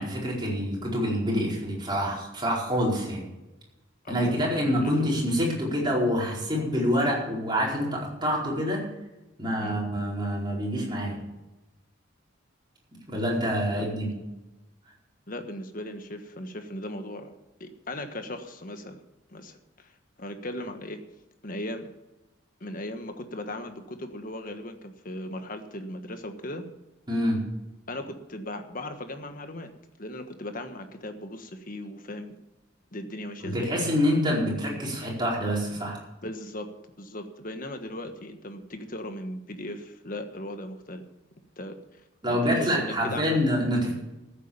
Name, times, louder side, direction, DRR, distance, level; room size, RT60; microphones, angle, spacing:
voice 1, 0.0-3.3 4.1-8.8 9.4-11.2 13.1-14.1 27.1-27.5 33.4-36.0 42.2-43.9, equal, 25° right, -3 dB, 4.6 m, -26 dB
voice 2, 4.0-4.9 9.6-9.8 13.7-13.9 15.3-17.3 17.6-19.0 19.3-19.9 20.2-21.0 21.4-21.9 22.6-26.7 27.9-29.7 30.0-32.4 32.9-33.7 36.2-36.7 37.0-41.0 41.6-41.8 42.3-43.4, left 1 dB, 45° left, 7 dB, 1.4 m, -37 dB
14.5 x 8.4 x 7.1 m, 1.0 s
head